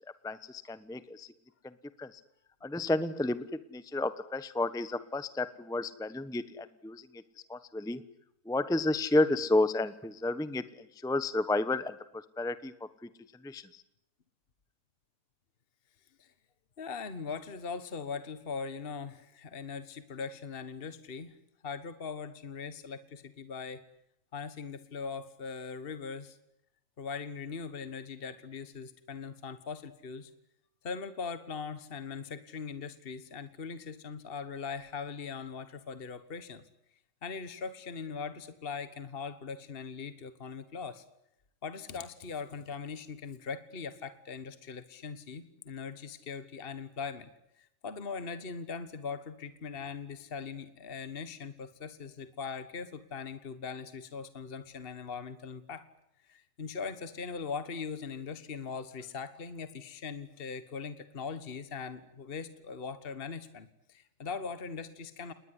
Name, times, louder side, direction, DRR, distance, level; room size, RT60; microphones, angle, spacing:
voice 1, 0.2-1.3 2.0-2.1 2.6-7.0 7.5-8.0 8.5-12.7 13.4-13.6, left 2 dB, 5° left, 14 dB, 0.9 m, -31 dB
voice 2, 16.8-21.3 21.6-23.8 24.3-26.4 27.0-30.3 30.8-36.6 37.2-41.0 41.6-47.3 47.6-55.9 56.2-65.3, left 5 dB, 40° left, 13 dB, 1.6 m, -40 dB
28.5 x 20.5 x 9.8 m, 0.80 s
omnidirectional pair, 1.6 m